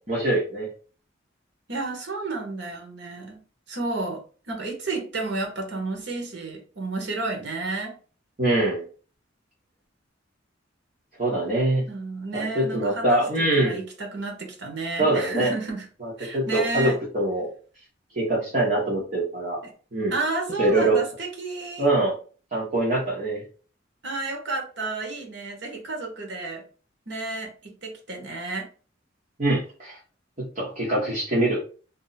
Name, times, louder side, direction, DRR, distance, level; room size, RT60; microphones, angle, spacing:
voice 1, 0.1-0.7 8.4-8.8 11.2-11.8 12.3-13.8 15.0-15.5 16.0-17.5 18.1-19.6 19.9-20.2 20.6-21.0 21.8-22.1 22.5-23.4 29.4-30.0 30.4-31.6, right 2 dB, 40° right, 1.0 m, -23 dB
voice 2, 1.7-8.0 11.9-15.9 16.2-17.0 19.6-19.7 20.1-21.9 24.0-26.7 27.1-28.7, right 3 dB, 65° right, 1.0 m, -32 dB
2.7 x 2.1 x 3.9 m
head